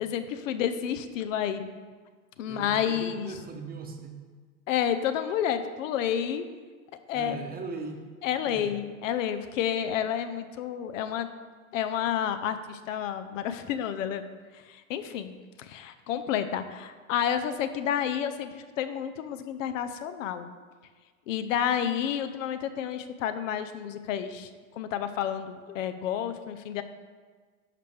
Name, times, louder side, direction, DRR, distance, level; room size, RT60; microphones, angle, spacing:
voice 1, 0.0-1.7 2.4-3.3 4.7-6.4 7.1-7.4 8.2-11.3 11.7-14.2 14.5-20.5 21.3-24.5 24.8-26.8, left 9 dB, 65° left, 10 dB, 0.6 m, -30 dB
voice 2, 2.5-4.2 7.1-8.0 8.4-8.7, right 4 dB, 20° right, 4 dB, 0.9 m, -39 dB
11.0 x 4.5 x 3.3 m, 1.5 s
hypercardioid pair, 100°, 41 cm